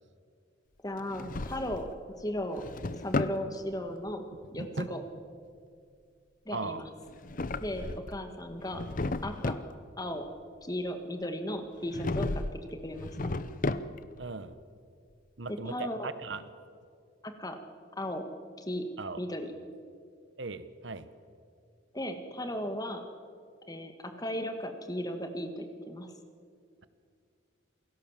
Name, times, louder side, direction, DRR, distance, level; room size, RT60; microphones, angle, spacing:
voice 1, 0.8-2.7 3.0-5.0 6.5-6.9 7.6-8.8 9.2-9.6 10.0-10.2 10.6-13.3 15.5-16.1 17.2-17.6 18.0-18.2 18.6-18.8 19.2-19.5 21.9-23.0 23.7-26.1, left 1 dB, 20° left, 6 dB, 1.9 m, -36 dB
Drawer open or close, 1.0-2.0 2.4-3.4 7.1-8.2 8.6-9.7 11.9-12.6 12.9-14.2, left 2 dB, 45° left, 0.7 m, -34 dB
voice 2, 6.5-6.8 14.2-14.5 15.4-16.5 19.0-19.2 20.4-21.1, right 3 dB, 65° right, 13 dB, 1.1 m, -38 dB
28.5 x 18.0 x 7.5 m, 2.3 s
head